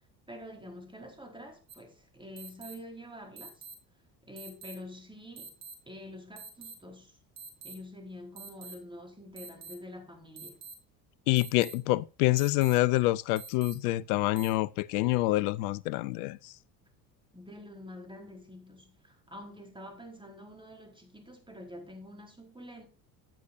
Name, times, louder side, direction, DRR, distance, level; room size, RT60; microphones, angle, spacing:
voice 1, 0.3-3.6 4.2-5.5 5.9-7.2 7.6-10.6 17.3-22.9, left 1 dB, 10° right, 4.5 m, -47 dB
sound 1, 1.7-1.8 2.4-2.7 3.4-3.7 4.4-4.7 5.4-5.7 6.4-6.7 7.4-7.7 8.4-8.7 9.4-9.7 10.4-10.7 11.4-11.7 12.4-12.7 13.4-13.7 14.4-14.5, right 5 dB, 75° right, 2.7 m, -45 dB
voice 2, 11.3-16.5, left 19 dB, 70° left, 0.8 m, -27 dB
15.0 x 8.4 x 2.7 m
hypercardioid pair, 65°, 47 cm